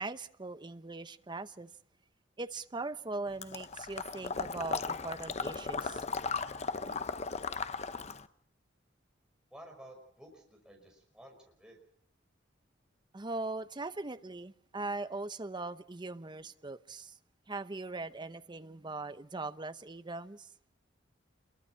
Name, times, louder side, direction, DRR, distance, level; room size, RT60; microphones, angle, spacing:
voice 1, 0.0-1.7 2.4-6.1 13.1-17.1 17.5-20.5, right 3 dB, 25° right, 0.8 m, -40 dB
Water / Liquid, 3.4-8.3, left 5 dB, 35° left, 0.8 m, -36 dB
voice 2, 9.5-11.8, right 1 dB, 5° right, 5.3 m, -53 dB
28.0 x 22.5 x 4.5 m
head